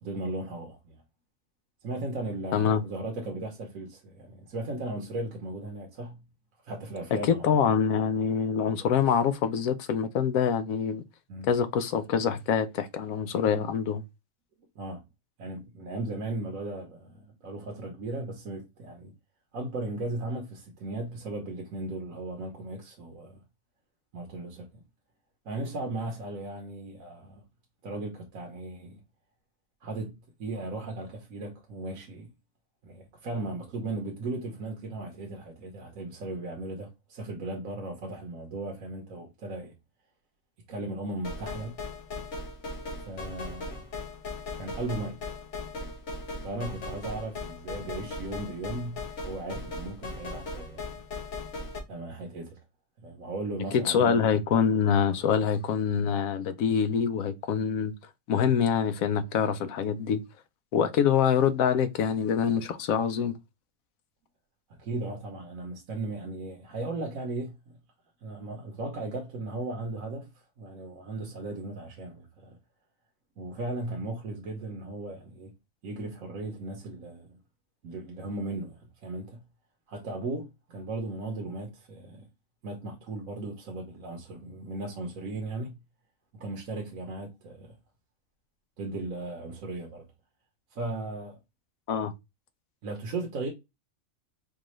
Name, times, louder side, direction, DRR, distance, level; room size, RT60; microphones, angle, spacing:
voice 1, 0.0-1.0 1.8-6.2 6.6-7.5 11.3-11.5 14.8-15.0 15.4-19.1 19.5-23.4 24.1-24.7 25.4-27.4 27.8-29.0 29.8-32.3 32.8-39.7 40.7-41.8 42.2-42.3 43.1-43.9 44.6-45.2 46.4-50.9 51.9-52.6 53.0-54.2 64.7-67.5 68.2-70.3 70.6-72.6 73.4-75.5 75.8-77.4 77.8-79.4 79.9-82.2 82.6-85.8 86.3-87.8 88.8-90.1 90.7-91.4 92.8-93.5, right 2 dB, 75° right, 1.3 m, -36 dB
voice 2, 2.5-2.8 7.3-11.0 11.5-14.0 53.8-57.9 58.3-60.2 60.7-63.3 91.9-92.1, left 7 dB, 80° left, 1.0 m, -25 dB
sound 1, 41.2-51.8, left 3 dB, 60° left, 1.4 m, -38 dB
4.7 x 2.4 x 3.1 m
omnidirectional pair, 1.4 m